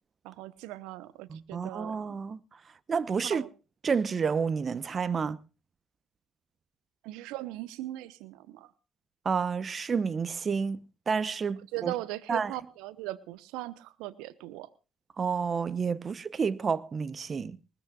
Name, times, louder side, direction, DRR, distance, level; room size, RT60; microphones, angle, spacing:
voice 1, 0.2-2.0 3.3-3.5 7.0-8.7 11.7-14.7, right 16 dB, 75° right, 1.0 m, -39 dB
voice 2, 1.3-2.4 2.9-3.5 3.8-5.4 9.2-11.9 12.3-12.5 15.2-17.6, right 5 dB, 40° right, 0.9 m, -30 dB
20.5 x 20.5 x 2.4 m
hypercardioid pair, 55°, 0 cm